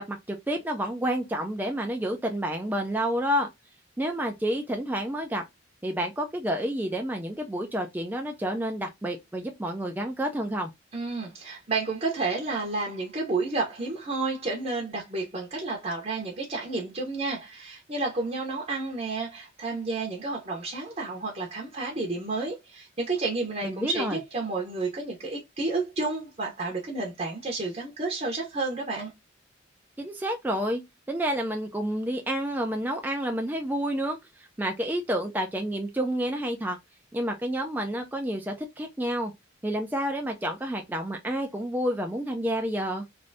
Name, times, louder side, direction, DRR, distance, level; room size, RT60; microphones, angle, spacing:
voice 1, 0.0-3.5 4.0-5.4 5.8-10.7 23.6-24.2 30.0-30.8 31.1-34.2 34.6-36.8 37.1-39.3 39.6-43.0, right 1 dB, 10° right, 0.3 m, -29 dB
voice 2, 10.9-29.1, right 3 dB, 35° right, 0.7 m, -31 dB
3.2 x 2.6 x 2.6 m
head